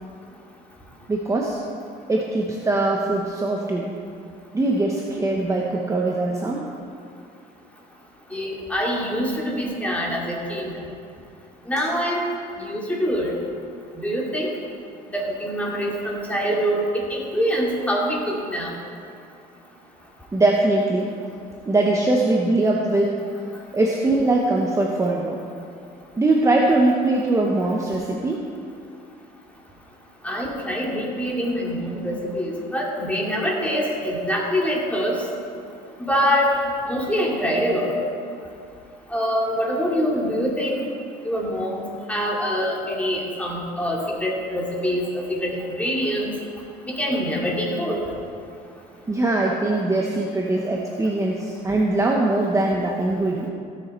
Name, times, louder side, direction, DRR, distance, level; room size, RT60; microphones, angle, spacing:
voice 1, 1.1-1.6 2.1-3.9 4.5-6.6 20.3-21.1 21.6-23.2 23.7-25.4 26.2-28.4 49.1-53.5, right 2 dB, 20° right, -1 dB, 0.9 m, -21 dB
voice 2, 8.3-10.7 11.7-12.2 12.6-13.3 14.0-14.5 15.1-18.8 30.2-35.2 36.0-36.6 36.9-37.9 39.1-40.8 41.2-46.3 46.9-48.0, equal, 10° left, -3 dB, 2.4 m, -24 dB
16.0 x 6.7 x 4.4 m, 2.4 s
cardioid pair, 110°, 17 cm